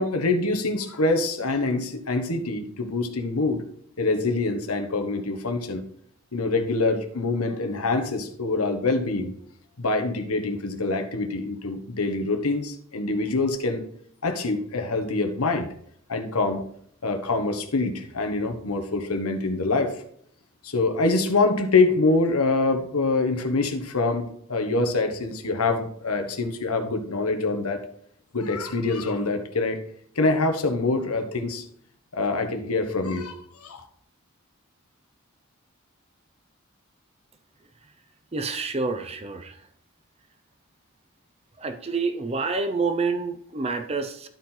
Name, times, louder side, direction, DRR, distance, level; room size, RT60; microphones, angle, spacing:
voice 1, 0.0-3.6 4.0-5.8 6.3-9.3 9.8-13.8 14.2-15.7 16.1-16.6 17.0-19.9 20.6-27.8 28.3-29.8 30.2-31.6 32.1-33.8, left 3 dB, 90° left, 6 dB, 1.2 m, -25 dB
voice 2, 38.3-39.5 41.6-44.3, right 4 dB, 30° right, 7 dB, 0.6 m, -28 dB
12.0 x 4.5 x 3.8 m, 0.65 s
head